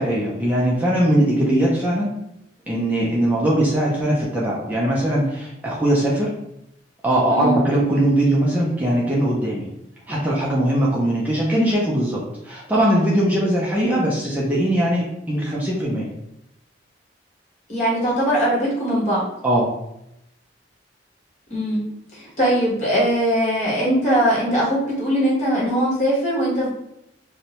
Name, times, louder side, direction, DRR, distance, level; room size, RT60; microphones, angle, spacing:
voice 1, 0.0-2.1 2.7-6.3 7.0-9.7 10.1-16.1 19.4-19.7, right 1 dB, 10° right, -6 dB, 0.4 m, -20 dB
voice 2, 17.7-19.2 21.5-21.8 22.1-26.7, equal, 40° left, -7 dB, 1.2 m, -20 dB
2.6 x 2.0 x 2.9 m, 0.84 s
head